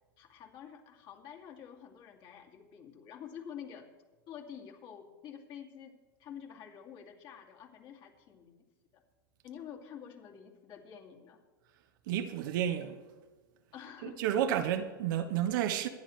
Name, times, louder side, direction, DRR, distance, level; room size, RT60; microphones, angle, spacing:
voice 1, 0.2-3.9 4.3-5.9 6.2-8.6 8.9-9.0 9.4-11.4 13.7-14.2, left 8 dB, 45° left, 2.5 m, -48 dB
voice 2, 12.1-13.0 14.0-15.9, right 10 dB, 60° right, 1.1 m, -31 dB
24.5 x 10.0 x 3.3 m
hypercardioid pair, 110°, 12 cm